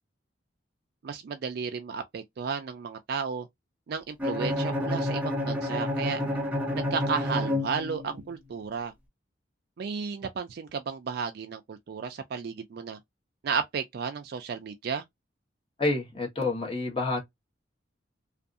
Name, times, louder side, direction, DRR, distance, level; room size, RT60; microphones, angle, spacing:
voice 1, 1.0-3.5 3.9-6.2 6.7-8.9 9.8-13.0 13.4-15.0, right 6 dB, 55° right, 0.3 m, -33 dB
Bowed string instrument, 4.2-8.3, left 1 dB, 10° right, 0.6 m, -29 dB
voice 2, 15.8-17.2, left 2 dB, 30° left, 1.1 m, -28 dB
2.6 x 2.5 x 2.4 m
head